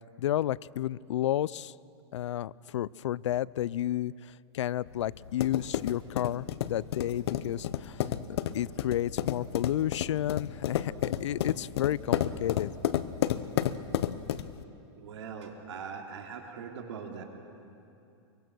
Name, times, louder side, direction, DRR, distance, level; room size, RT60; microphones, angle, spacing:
voice 1, 0.0-1.7 2.1-8.0 8.3-12.7, left 12 dB, 90° left, 22 dB, 0.4 m, -31 dB
sound 1, 4.9-14.6, left 11 dB, 60° left, 0.8 m, -32 dB
voice 2, 15.0-17.2, right 6 dB, 75° right, 2 dB, 3.2 m, -41 dB
25.0 x 23.0 x 6.2 m, 2.7 s
supercardioid pair, 165°, 15 cm